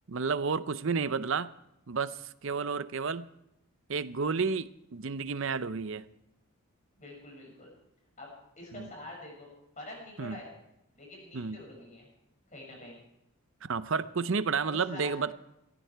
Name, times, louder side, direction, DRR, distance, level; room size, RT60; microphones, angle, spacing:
voice 1, 0.1-1.5 1.9-3.3 3.9-6.1 8.7-8.9 10.2-10.4 11.3-11.6 13.6-15.3, right 5 dB, 60° right, 15 dB, 0.6 m, -31 dB
voice 2, 7.0-7.7 8.2-9.5 9.8-10.5 10.9-12.1 12.5-13.0 14.6-15.1, left 1 dB, 35° left, -1 dB, 6.3 m, -46 dB
17.0 x 15.0 x 4.6 m, 0.84 s
head